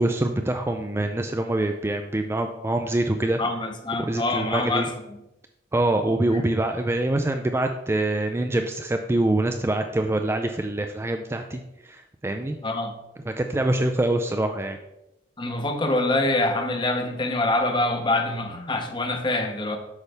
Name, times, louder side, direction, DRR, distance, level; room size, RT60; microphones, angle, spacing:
voice 1, 0.0-3.4 4.1-4.9 5.7-12.6 13.3-14.8, right 1 dB, 15° right, 5 dB, 0.3 m, -25 dB
voice 2, 3.4-4.9 6.3-6.5 12.6-12.9 15.4-19.8, left 2 dB, 25° left, 6 dB, 0.8 m, -25 dB
8.1 x 5.5 x 3.4 m, 0.90 s
head